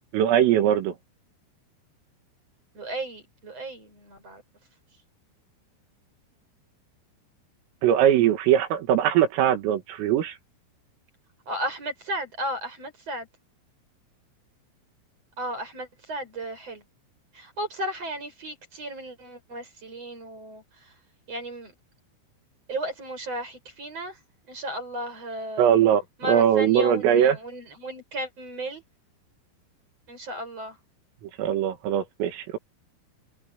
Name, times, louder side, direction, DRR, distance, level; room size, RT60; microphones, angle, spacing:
voice 1, 0.1-0.9 7.8-10.4 25.6-27.4 31.4-32.6, right 10 dB, 85° right, 4.8 m, -21 dB
voice 2, 2.7-4.4 11.5-13.3 15.4-16.8 17.3-20.6 21.3-21.7 22.7-24.2 24.5-25.7 26.2-28.8 30.1-30.8, right 1 dB, 30° right, 8.2 m, -34 dB
omnidirectional pair, 5.8 m